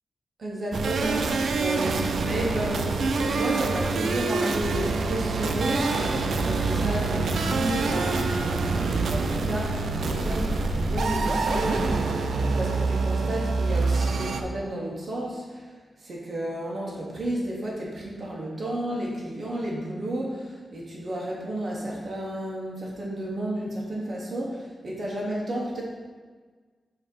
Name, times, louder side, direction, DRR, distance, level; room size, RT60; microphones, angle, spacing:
voice 1, 0.4-15.7 16.0-25.8, right 1 dB, 50° right, -4 dB, 1.2 m, -32 dB
sound 1, 0.7-14.4, right 3 dB, 90° right, 0.4 m, -26 dB
sound 2, 6.5-12.0, equal, 5° right, 0.7 m, -36 dB
7.1 x 2.9 x 5.3 m, 1.4 s
wide cardioid pair, 130°, 0 cm